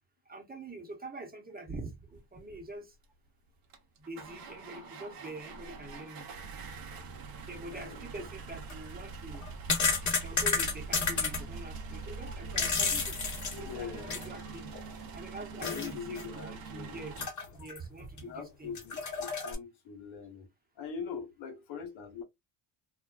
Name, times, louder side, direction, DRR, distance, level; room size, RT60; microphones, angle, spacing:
voice 1, 0.3-2.9 4.0-6.2 7.4-9.4 10.2-13.2 13.6-14.7 15.1-17.2 17.5-18.8, right 2 dB, 20° right, 1.0 m, -45 dB
sound 1, 3.0-3.1 3.7-17.3, right 4 dB, 45° right, 0.9 m, -44 dB
voice 2, 7.7-8.3 13.6-14.3 15.5-17.0 17.6-17.7 18.2-20.5 20.8-22.2, left 6 dB, 70° left, 1.0 m, -42 dB
sound 2, 8.5-8.7 9.3-11.4 12.3-14.4 14.7-14.8 15.6-15.9 16.2-16.3 17.2-17.8 18.2-18.3 18.8-19.6, left 5 dB, 35° left, 1.1 m, -31 dB
2.5 x 2.2 x 2.3 m
supercardioid pair, 65°, 48 cm